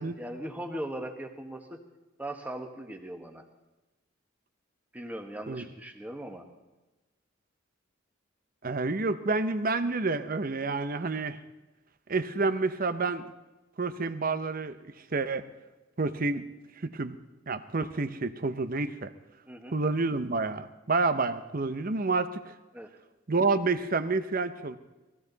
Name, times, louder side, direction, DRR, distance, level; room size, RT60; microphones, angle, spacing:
voice 1, 0.0-1.7 2.2-3.4 4.9-6.4 19.5-19.7 22.7-22.9, right 1 dB, 10° right, 3 dB, 1.4 m, -39 dB
voice 2, 8.6-11.4 12.1-13.3 13.8-14.8 15.1-15.4 16.0-16.5 16.8-17.2 17.5-19.1 19.7-22.5 23.3-24.8, right 3 dB, 45° right, 11 dB, 0.8 m, -29 dB
19.5 x 16.0 x 4.0 m, 1.1 s
head